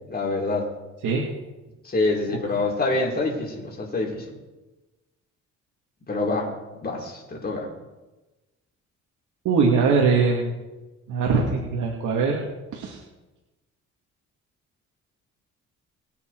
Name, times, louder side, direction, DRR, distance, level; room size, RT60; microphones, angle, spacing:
voice 1, 0.1-0.7 1.9-4.3 6.1-6.5 6.8-7.7, left 2 dB, 30° left, -2 dB, 5.0 m, -26 dB
voice 2, 9.4-10.6 11.1-12.4 12.7-13.0, right 4 dB, 80° right, -2 dB, 2.6 m, -22 dB
22.5 x 8.8 x 4.9 m, 1.1 s
cardioid pair, 90°, 30 cm